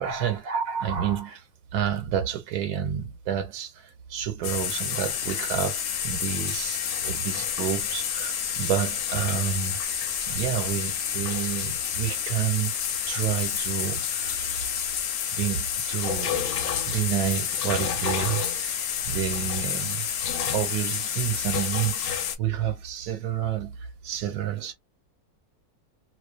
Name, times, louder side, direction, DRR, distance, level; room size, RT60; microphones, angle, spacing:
voice 1, 0.0-1.5 1.7-9.8 10.3-12.8 13.1-14.5 15.3-16.4 16.9-20.1 20.5-24.7, right 9 dB, 90° right, 1.1 m, -29 dB
sound 1, 4.4-22.4, left 8 dB, 75° left, 1.0 m, -29 dB
2.5 x 2.2 x 2.3 m
omnidirectional pair, 1.6 m